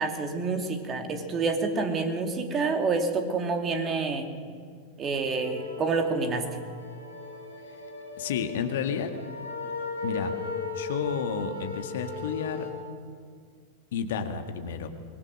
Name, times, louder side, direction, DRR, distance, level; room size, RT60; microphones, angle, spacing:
voice 1, 0.0-4.3 5.0-6.5, right 4 dB, 25° right, 5 dB, 2.5 m, -28 dB
sound 1, 5.3-12.7, left 4 dB, 85° left, 4.3 m, -37 dB
voice 2, 8.2-9.1 10.0-10.3 10.7-12.7 13.9-14.9, left 7 dB, 55° left, 6 dB, 1.8 m, -31 dB
25.5 x 20.5 x 6.4 m, 2.1 s
figure-of-eight pair, 90°, 0 cm